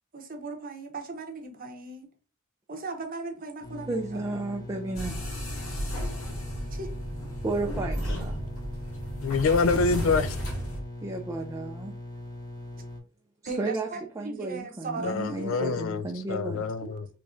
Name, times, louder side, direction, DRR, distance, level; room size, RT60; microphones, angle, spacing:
voice 1, 0.1-2.1 2.7-4.6 6.7-6.9 13.4-15.9 16.8-17.1, right 3 dB, 40° right, 0.7 m, -38 dB
sound 1, 3.6-13.0, left 2 dB, 20° left, 0.8 m, -41 dB
voice 2, 3.9-5.1 7.4-8.4 11.0-12.0 13.6-13.9 14.2-16.7, right 2 dB, 15° right, 0.3 m, -33 dB
sound 2, 4.9-10.8, equal, 90° left, 1.6 m, -33 dB
voice 3, 9.2-10.4 15.0-16.0 16.3-17.0, left 4 dB, 65° left, 0.3 m, -26 dB
3.2 x 2.5 x 3.6 m
head